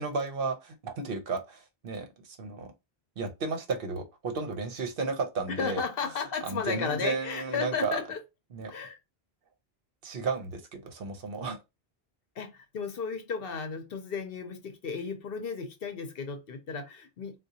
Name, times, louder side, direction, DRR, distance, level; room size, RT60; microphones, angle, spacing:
voice 1, 0.0-2.7 3.2-5.8 6.4-8.0 8.5-8.7 10.0-11.6, right 4 dB, 65° right, 0.9 m, -33 dB
voice 2, 5.5-8.2 8.7-9.0 12.4-17.4, left 6 dB, 65° left, 0.9 m, -34 dB
3.7 x 2.4 x 2.7 m
omnidirectional pair, 1.0 m